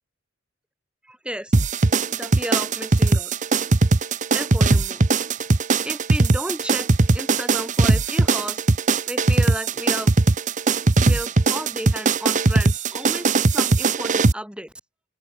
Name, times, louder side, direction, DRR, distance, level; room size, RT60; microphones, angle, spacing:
voice 1, 1.0-1.6 2.1-3.3 4.3-5.0 5.8-6.9 7.1-8.7 9.1-10.1 11.0-14.7, right 1 dB, 5° right, 6.4 m, -33 dB
sound 1, 1.5-14.3, right 3 dB, 35° right, 0.7 m, -19 dB
open air
head